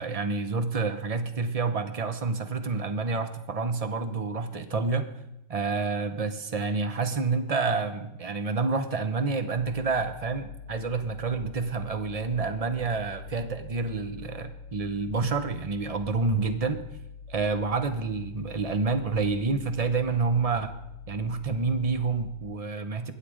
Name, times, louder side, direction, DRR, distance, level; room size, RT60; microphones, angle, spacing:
voice 1, 0.0-5.1 5.5-16.8 17.3-20.7 21.1-23.1, right 4 dB, 65° right, 9 dB, 0.3 m, -28 dB
sound 1, 9.6-22.5, left 6 dB, 90° left, 1.4 m, -45 dB
21.5 x 7.6 x 5.0 m, 0.87 s
omnidirectional pair, 1.9 m